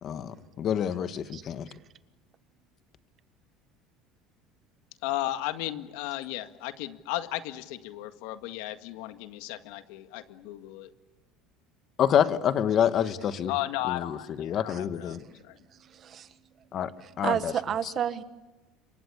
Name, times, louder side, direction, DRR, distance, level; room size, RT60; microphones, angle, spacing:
voice 1, 0.0-1.7 12.0-13.5 13.9-15.2 16.7-16.9 17.2-17.5 17.8-17.9, left 9 dB, 40° left, 12 dB, 1.4 m, -27 dB
voice 2, 5.0-10.9 13.5-15.6, left 15 dB, 80° left, 9 dB, 1.8 m, -35 dB
voice 3, 15.8-16.3 17.2-18.2, right 9 dB, 35° right, 12 dB, 1.5 m, -30 dB
27.5 x 24.0 x 8.4 m, 1.1 s
cardioid pair, 135°, 0 cm